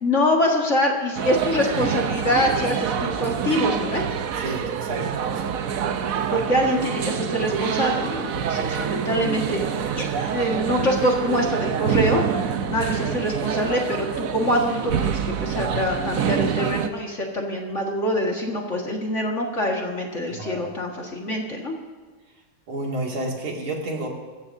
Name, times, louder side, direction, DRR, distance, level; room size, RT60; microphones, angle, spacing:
voice 1, 0.0-4.0 6.3-9.7 10.0-12.2 12.7-21.7, equal, 35° left, 0 dB, 1.9 m, -24 dB
sound 1, 1.2-16.9, right 7 dB, 60° right, 0.9 m, -26 dB
voice 2, 4.4-5.5 20.3-20.7 22.7-24.1, right 2 dB, 75° right, -1 dB, 3.2 m, -31 dB
23.5 x 14.0 x 2.7 m, 1.5 s
omnidirectional pair, 2.3 m